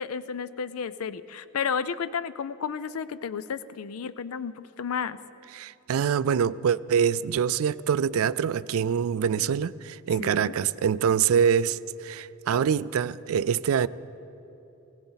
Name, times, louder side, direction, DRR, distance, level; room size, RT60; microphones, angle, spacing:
voice 1, 0.0-5.2 10.2-10.6, left 6 dB, 80° left, 0.5 m, -32 dB
voice 2, 5.5-13.9, right 7 dB, 75° right, 0.3 m, -25 dB
20.0 x 17.5 x 4.0 m
head